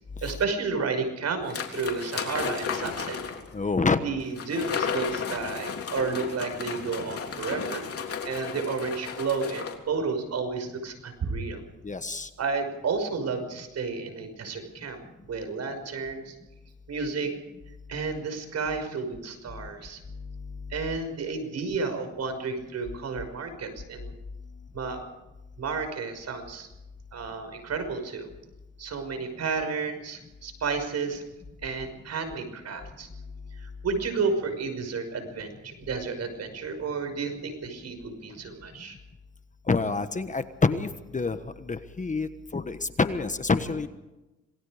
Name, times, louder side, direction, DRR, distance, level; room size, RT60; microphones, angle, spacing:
voice 1, 0.2-3.2 4.0-7.8 8.2-11.6 12.4-16.3 16.9-17.4 17.9-20.0 20.7-24.1 24.7-25.1 25.6-26.7 27.1-28.3 28.8-31.2 31.6-33.1 33.6-39.0, right 4 dB, 60° right, 7 dB, 5.8 m, -31 dB
sound 1, 1.5-3.5 4.4-9.7, left 6 dB, 50° left, 3.5 m, -33 dB
voice 2, 3.5-4.0 11.8-12.3 39.7-43.9, left 4 dB, 25° left, 10 dB, 1.3 m, -27 dB
27.0 x 19.0 x 5.1 m, 1.0 s
cardioid pair, 90°, 30 cm